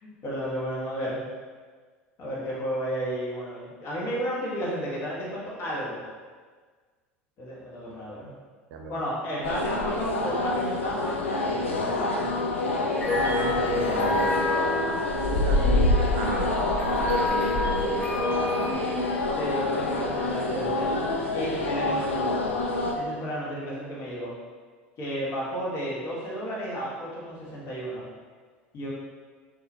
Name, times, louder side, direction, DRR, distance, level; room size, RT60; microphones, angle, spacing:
voice 1, 0.0-1.2 2.2-6.0 7.4-8.3 8.9-11.8 13.6-14.3 15.6-15.8 19.4-21.0 21.3-22.4 22.9-24.3 25.0-28.1 28.7-28.9, equal, 45° left, -6 dB, 1.4 m, -33 dB
voice 2, 8.7-9.0 13.1-14.4 15.3-16.6 16.8-18.9, right 4 dB, 60° right, 2 dB, 0.5 m, -35 dB
sound 1, 9.4-22.9, left 2 dB, 85° left, 0.4 m, -27 dB
sound 2, 13.0-18.7, left 2 dB, 20° left, 1.1 m, -29 dB
4.1 x 2.7 x 2.7 m, 1.5 s
hypercardioid pair, 75°, 7 cm